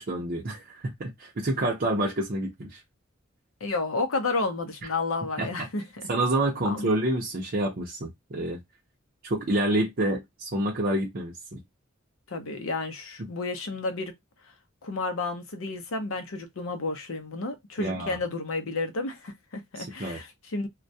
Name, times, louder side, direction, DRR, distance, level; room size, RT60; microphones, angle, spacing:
voice 1, 0.0-2.8 5.4-5.5 6.1-8.6 9.2-11.6 17.8-18.2 19.8-20.2, right 1 dB, 45° right, 0.5 m, -28 dB
voice 2, 3.6-6.1 6.6-6.9 12.3-14.1 14.8-20.7, left 3 dB, 75° left, 0.6 m, -31 dB
2.3 x 2.1 x 2.6 m
head